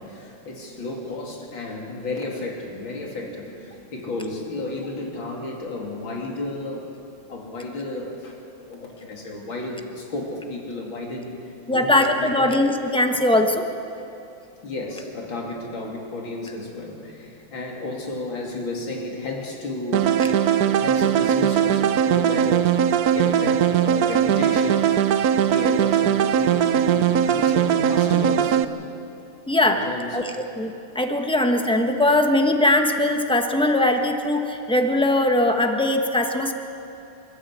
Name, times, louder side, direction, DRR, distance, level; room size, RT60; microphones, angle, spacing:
voice 1, 0.0-6.9 7.3-8.4 8.6-11.3 11.7-12.6 14.6-20.2 20.7-22.8 23.1-24.9 25.4-28.6 29.6-30.3, left 2 dB, 65° left, -1 dB, 3.6 m, -32 dB
voice 2, 11.7-13.7 20.2-20.3 29.5-29.8 30.1-36.5, left 1 dB, 5° left, 4 dB, 0.8 m, -21 dB
sound 1, 19.9-28.6, right 9 dB, 70° right, 0.9 m, -20 dB
27.0 x 14.0 x 8.2 m, 2.7 s
omnidirectional pair, 2.3 m